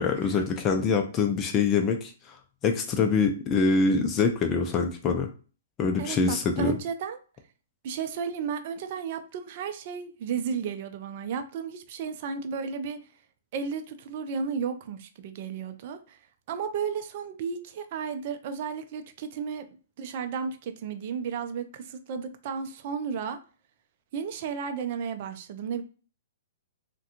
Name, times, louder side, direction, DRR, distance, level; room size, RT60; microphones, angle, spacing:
voice 1, 0.0-2.4 2.6-5.3 5.8-6.7, left 4 dB, 25° left, 0.4 m, -25 dB
voice 2, 6.0-7.2 7.8-13.0 13.5-16.2 16.5-19.7 20.0-23.4 24.1-25.8, right 6 dB, 50° right, 0.5 m, -33 dB
3.5 x 2.2 x 2.9 m
hypercardioid pair, 135°, 0 cm